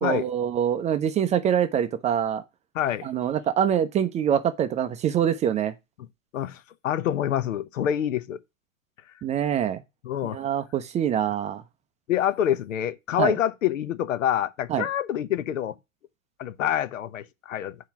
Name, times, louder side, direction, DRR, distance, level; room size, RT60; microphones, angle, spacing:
voice 1, 0.0-2.4 3.0-5.7 9.2-9.8 10.3-11.6 13.2-13.3 14.7-14.9, right 9 dB, 15° right, 0.5 m, -24 dB
voice 2, 2.7-3.1 6.3-8.4 10.0-10.4 12.1-15.7 16.4-17.8, left 10 dB, 70° left, 0.9 m, -26 dB
7.0 x 4.7 x 5.9 m
hypercardioid pair, 115°, 40 cm